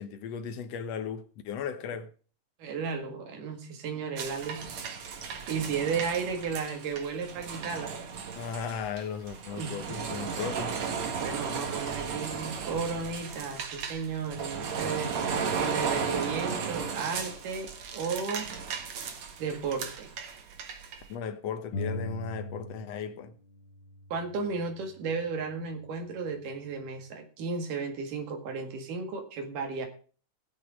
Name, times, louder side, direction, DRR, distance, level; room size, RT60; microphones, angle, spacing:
voice 1, 0.0-2.1 8.3-10.8 21.1-23.3, left 7 dB, 65° left, 1.9 m, -36 dB
voice 2, 2.6-5.0 5.5-7.9 9.6-10.0 11.2-18.5 19.4-20.1 24.1-29.9, right 5 dB, 90° right, 3.6 m, -34 dB
sound 1, 4.2-21.1, right 6 dB, 60° right, 2.6 m, -35 dB
sound 2, 21.7-23.2 23.5-25.3, left 1 dB, 45° left, 2.0 m, -40 dB
17.5 x 6.6 x 5.2 m
omnidirectional pair, 3.6 m